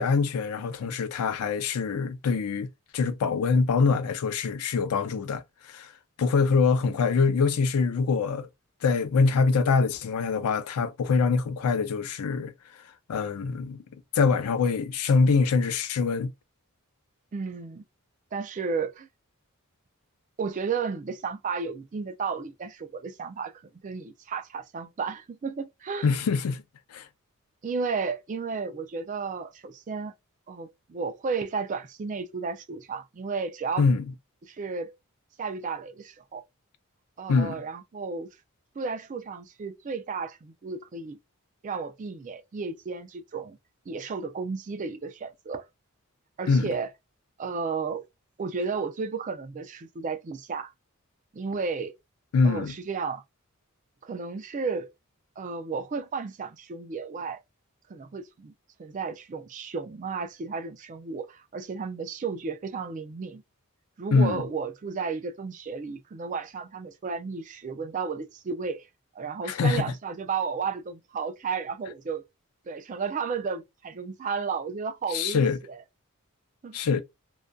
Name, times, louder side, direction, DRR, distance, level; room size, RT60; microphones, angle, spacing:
voice 1, 0.0-5.9 6.2-8.5 8.8-12.5 13.1-13.8 14.1-16.3 26.0-26.6 26.9-27.1 33.8-34.0 37.3-37.6 46.5-46.7 52.3-52.7 64.1-64.4 69.5-69.8 75.1-75.6 76.7-77.0, left 4 dB, 85° left, 0.4 m, -24 dB
voice 2, 17.3-17.8 18.3-19.1 20.4-23.5 23.8-26.1 27.6-30.1 30.5-33.9 34.5-34.9 35.4-36.4 37.2-38.3 38.8-41.2 41.6-43.6 43.9-45.6 46.4-46.9 47.4-48.0 48.4-50.7 51.3-51.9 52.4-53.2 54.0-54.9 55.4-57.4 57.9-58.5 58.8-63.4 64.0-68.9 69.2-72.2 72.7-75.8 76.6-77.0, right 5 dB, 35° right, 0.3 m, -33 dB
2.5 x 2.3 x 2.2 m
head